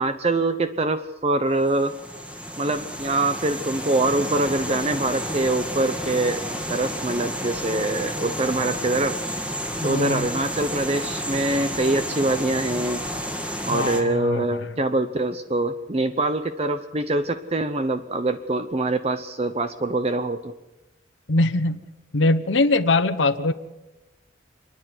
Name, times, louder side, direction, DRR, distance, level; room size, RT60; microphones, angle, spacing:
voice 1, 0.0-1.9 2.6-6.4 6.7-9.2 9.8-13.0 13.6-20.5, right 2 dB, 35° right, 10 dB, 0.8 m, -24 dB
sound 1, 1.6-14.0, equal, 5° right, 2.0 m, -31 dB
voice 2, 9.8-10.3 13.7-14.7 21.3-21.8 22.1-23.5, left 2 dB, 85° left, 10 dB, 1.0 m, -22 dB
28.0 x 10.0 x 9.6 m, 1.1 s
head